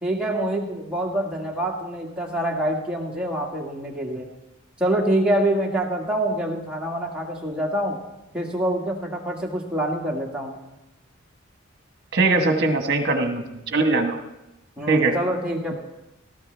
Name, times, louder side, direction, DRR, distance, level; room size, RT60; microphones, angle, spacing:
voice 1, 0.0-4.3 4.8-8.0 8.3-10.6 14.8-15.7, right 1 dB, 5° right, -2 dB, 1.8 m, -26 dB
voice 2, 12.1-14.2 14.9-15.2, right 3 dB, 50° right, 5 dB, 1.3 m, -21 dB
18.0 x 12.5 x 3.4 m, 0.96 s
head